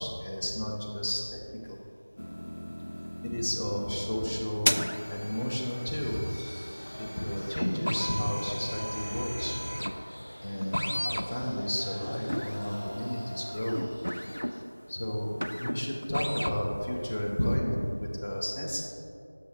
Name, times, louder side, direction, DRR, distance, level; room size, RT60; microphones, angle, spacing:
voice 1, 0.0-1.4 1.7-1.8 3.2-4.8 5.0-6.2 7.0-9.6 10.4-13.8 14.9-18.9, equal, 20° left, -2 dB, 0.5 m, -32 dB
sound 1, 2.2-16.7 17.1-17.6, equal, 80° left, 0.3 m, -35 dB
sound 2, 5.9-14.6, equal, 65° left, 0.7 m, -47 dB
6.3 x 4.6 x 3.3 m, 2.7 s
figure-of-eight pair, 175°, 0 cm